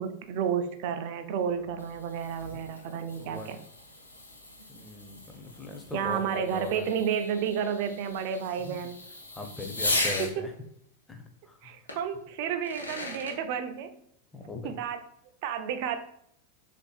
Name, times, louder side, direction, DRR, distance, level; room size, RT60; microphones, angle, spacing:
voice 1, 0.0-3.6 5.9-9.0 10.2-10.5 11.6-14.0 14.6-15.0 15.4-16.0, right 7 dB, 45° right, 8 dB, 0.3 m, -31 dB
Fireworks, 1.5-10.3 11.9-12.0 12.5-13.4, left 2 dB, 85° left, 0.6 m, -37 dB
voice 2, 3.2-3.5 4.7-6.9 8.6-8.8 9.3-10.5 11.1-11.6 14.3-14.7, left 3 dB, 10° left, 3 dB, 0.5 m, -40 dB
3.4 x 2.5 x 2.3 m, 0.70 s
figure-of-eight pair, 90°, 0 cm